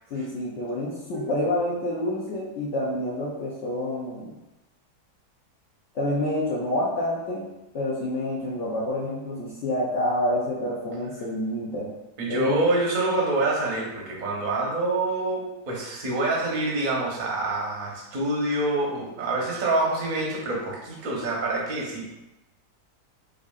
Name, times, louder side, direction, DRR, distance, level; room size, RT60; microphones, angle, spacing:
voice 1, 0.1-4.3 5.9-11.9 12.3-12.6, left 1 dB, 65° left, -5 dB, 0.7 m, -28 dB
voice 2, 12.2-22.1, right 2 dB, 45° right, -3 dB, 0.6 m, -26 dB
4.7 x 2.6 x 2.4 m, 0.98 s
omnidirectional pair, 1.8 m